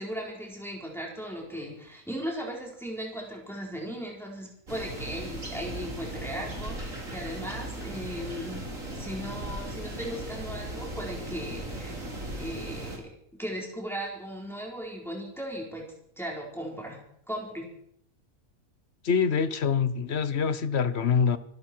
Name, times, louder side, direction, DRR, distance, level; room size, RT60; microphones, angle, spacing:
voice 1, 0.0-8.6 8.9-12.0 12.4-13.1 13.4-15.8 16.2-17.0 17.3-17.7, equal, ahead, 4.1 m, -37 dB
sound 1, 4.7-13.0, right 1 dB, 70° right, 3.9 m, -37 dB
voice 2, 19.0-21.4, left 6 dB, 55° left, 1.1 m, -25 dB
26.5 x 12.0 x 4.5 m
omnidirectional pair, 1.4 m